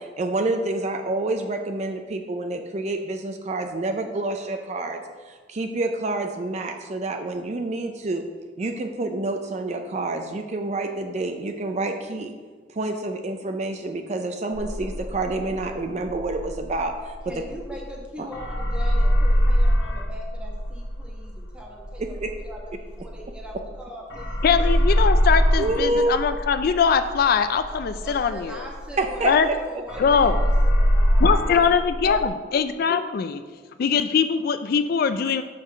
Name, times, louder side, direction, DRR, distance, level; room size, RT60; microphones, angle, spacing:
voice 1, 0.0-8.2 8.6-12.3 12.7-17.3 18.2-18.3 22.2-22.3 25.6-26.2 29.0-29.5 29.9-30.0, right 2 dB, 40° right, 5 dB, 0.5 m, -28 dB
sound 1, 14.5-18.0 18.3-23.8 24.1-29.6 29.9-32.3, equal, 75° left, 1.0 m, -23 dB
voice 2, 17.2-24.8 27.9-31.8, equal, 5° right, -2 dB, 1.4 m, -41 dB
voice 3, 24.4-28.6 29.2-29.5 30.0-30.4 31.2-33.4 33.8-35.4, left 6 dB, 55° left, 10 dB, 0.3 m, -21 dB
5.8 x 4.9 x 6.4 m, 1.5 s
head